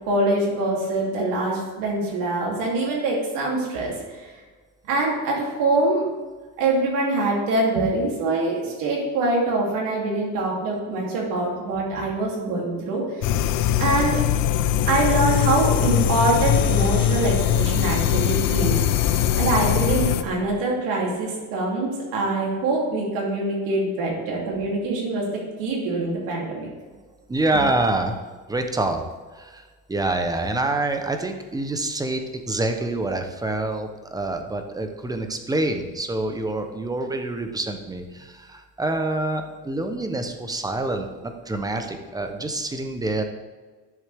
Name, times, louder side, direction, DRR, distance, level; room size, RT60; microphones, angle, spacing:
voice 1, 0.0-4.3 4.8-6.0 6.6-13.3 13.8-14.2 14.9-18.8 19.4-25.3 25.6-26.7, right 2 dB, 85° right, -3 dB, 3.1 m, -24 dB
sound 1, 13.2-20.2, left 10 dB, 65° left, 0.6 m, -21 dB
voice 2, 19.0-19.4 27.3-28.2 28.5-29.0 29.3-43.2, right 2 dB, 10° right, 5 dB, 0.8 m, -26 dB
10.5 x 7.0 x 3.5 m, 1.4 s
cardioid pair, 130°, 33 cm